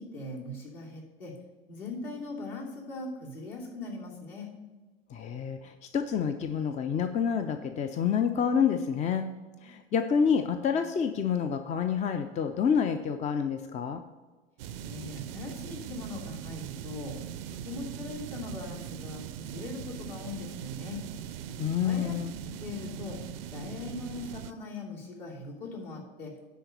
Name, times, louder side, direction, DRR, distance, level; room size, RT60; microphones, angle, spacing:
voice 1, 0.0-1.3 1.7-4.5 14.9-17.2 17.5-21.0 21.8-22.1 22.4-23.2 23.5-26.3, left 3 dB, 60° left, -3 dB, 2.9 m, -40 dB
voice 2, 5.1-9.3 9.6-14.0 21.6-22.3, left 7 dB, 25° left, 8 dB, 0.5 m, -28 dB
sound 1, 14.6-24.5, right 9 dB, 65° right, 0.6 m, -41 dB
10.0 x 4.1 x 6.7 m, 1.3 s
figure-of-eight pair, 80°, 31 cm